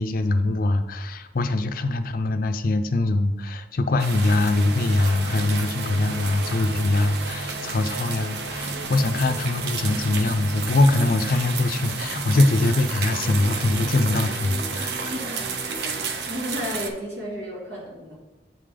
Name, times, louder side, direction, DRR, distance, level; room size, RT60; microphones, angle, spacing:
voice 1, 0.0-15.0, left 2 dB, 50° left, 9 dB, 0.4 m, -22 dB
sound 1, 4.0-16.9, right 5 dB, 65° right, 0.5 m, -32 dB
sound 2, 4.2-16.0, equal, 45° right, 1.0 m, -37 dB
voice 2, 15.1-15.5 15.8-18.2, equal, 85° right, -5 dB, 2.1 m, -33 dB
7.6 x 3.3 x 3.7 m, 1.1 s
head